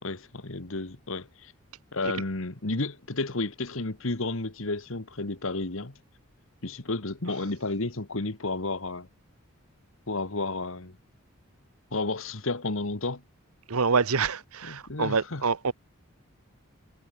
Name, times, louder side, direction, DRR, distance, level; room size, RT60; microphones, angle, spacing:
voice 1, 0.0-1.5 1.9-5.9 6.6-9.1 10.1-10.9 11.9-13.2 14.6-15.4, left 2 dB, 65° left, 1.6 m, -32 dB
voice 2, 13.7-15.7, right 5 dB, 90° right, 1.0 m, -26 dB
head